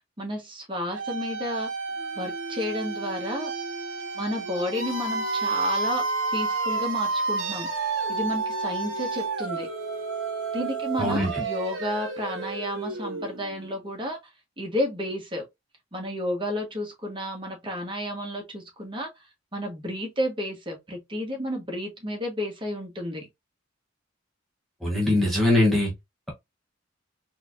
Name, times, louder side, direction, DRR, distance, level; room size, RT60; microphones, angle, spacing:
voice 1, 0.2-1.7 2.1-3.5 4.1-6.0 6.3-7.7 8.1-9.7 10.5-14.2 14.6-15.4 15.9-19.1 19.5-23.3, left 1 dB, 25° right, 1.4 m, -31 dB
sound 1, 0.9-13.7, right 3 dB, 70° right, 0.9 m, -30 dB
voice 2, 24.8-25.9, left 1 dB, ahead, 0.9 m, -21 dB
4.2 x 2.9 x 2.5 m
head